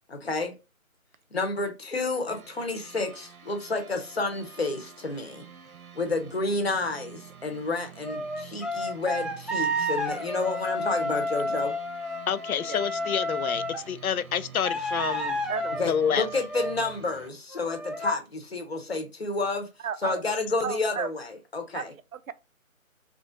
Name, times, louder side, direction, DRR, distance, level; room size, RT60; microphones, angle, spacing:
voice 1, 0.1-0.5 1.3-5.5 5.9-11.7 15.8-19.7 20.0-21.9, left 3 dB, 45° left, 0.9 m, -30 dB
sound 1, 2.3-17.3, right 8 dB, 85° right, 0.9 m, -48 dB
sound 2, 8.0-13.8 14.6-17.0 17.5-18.1, left 1 dB, ahead, 0.3 m, -31 dB
voice 2, 12.3-15.4 15.8-16.3, left 8 dB, 80° left, 0.6 m, -28 dB
voice 3, 19.8-20.2 20.6-21.1 21.7-21.8 22.1-22.3, right 7 dB, 70° right, 0.5 m, -33 dB
3.3 x 2.5 x 3.9 m
figure-of-eight pair, 165°, 42 cm